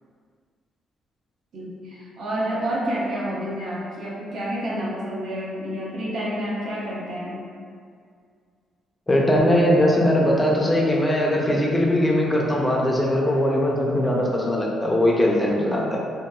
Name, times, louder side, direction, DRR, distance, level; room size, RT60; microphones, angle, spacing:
voice 1, 1.5-7.5, equal, 70° right, -5 dB, 0.6 m, -29 dB
voice 2, 9.1-16.0, left 1 dB, 20° left, -2 dB, 0.5 m, -20 dB
2.8 x 2.2 x 2.2 m, 2.2 s
cardioid pair, 90°, 0 cm